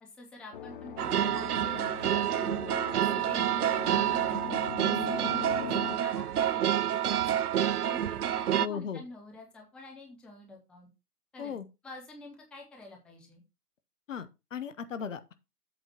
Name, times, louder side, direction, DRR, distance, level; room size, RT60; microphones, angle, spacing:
voice 1, 0.0-2.5 2.8-6.7 7.1-10.9 11.3-11.5 11.8-13.4, left 2 dB, ahead, 0.8 m, -48 dB
sound 1, 0.5-6.0, left 8 dB, 35° left, 0.6 m, -41 dB
sound 2, 1.0-8.7, right 10 dB, 70° right, 0.6 m, -28 dB
voice 2, 8.6-9.0 11.4-11.6 14.1-15.3, left 7 dB, 55° left, 1.0 m, -37 dB
8.2 x 3.9 x 6.1 m
figure-of-eight pair, 130°, 47 cm